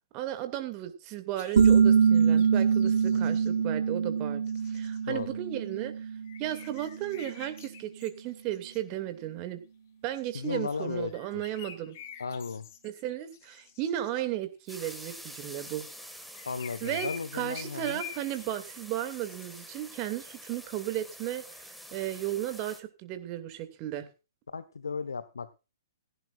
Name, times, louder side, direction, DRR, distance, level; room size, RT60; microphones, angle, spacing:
voice 1, 0.1-4.4 4.7-6.1 6.4-9.6 10.0-12.0 12.8-15.8 16.8-17.1 17.3-24.1, right 13 dB, 30° right, 9 dB, 2.4 m, -35 dB
sound 1, 1.3-3.5 4.5-5.3 5.6-5.8 6.2-8.8 10.1-14.2 14.7-15.1 16.1-18.8 19.1-19.6, left 9 dB, 45° left, 2.1 m, -48 dB
sound 2, 1.6-7.0, right 6 dB, 65° right, 1.0 m, -24 dB
voice 2, 10.3-11.4 12.2-12.7 16.4-18.0 24.5-25.5, left 5 dB, 70° left, 13 dB, 1.2 m, -35 dB
sound 3, 14.7-22.8, equal, ahead, 1.9 m, -47 dB
17.0 x 15.5 x 2.5 m, 0.30 s
figure-of-eight pair, 120°, 2 cm